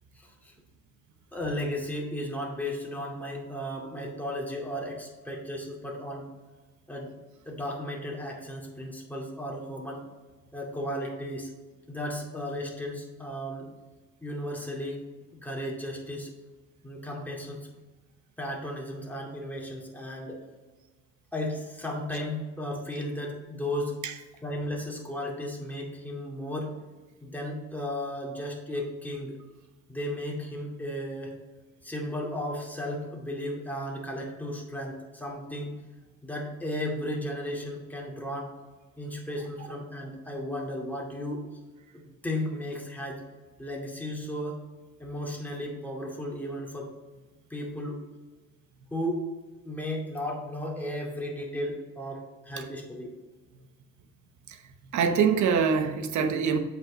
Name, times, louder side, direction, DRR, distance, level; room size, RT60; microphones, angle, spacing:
voice 1, 0.1-0.5 1.3-6.3 6.9-7.1 7.5-10.0 10.5-11.5 11.9-13.7 14.2-15.0 15.4-16.3 16.8-17.7 18.4-20.4 21.3-23.9 24.4-26.7 27.2-29.4 29.9-31.4 31.8-35.7 36.2-38.5 39.0-41.4 41.9-43.2 43.6-44.6 45.0-46.9 47.5-48.0 48.9-49.2 49.6-53.1, left 1 dB, 5° left, -2 dB, 2.3 m, -34 dB
voice 2, 54.9-56.6, right 6 dB, 75° right, 7 dB, 1.0 m, -24 dB
7.7 x 5.6 x 3.9 m, 1.3 s
cardioid pair, 90°, 30 cm